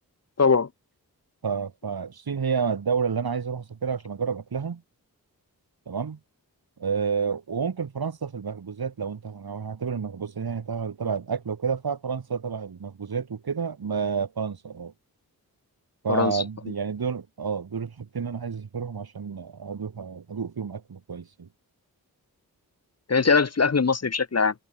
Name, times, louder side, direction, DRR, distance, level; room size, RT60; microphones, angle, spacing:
voice 1, 0.4-0.7 16.1-16.4 23.1-24.5, left 5 dB, 45° left, 1.1 m, -21 dB
voice 2, 1.4-4.8 5.9-6.2 6.8-14.9 16.0-21.5, right 6 dB, 75° right, 2.9 m, -30 dB
wide cardioid pair, 70°, 37 cm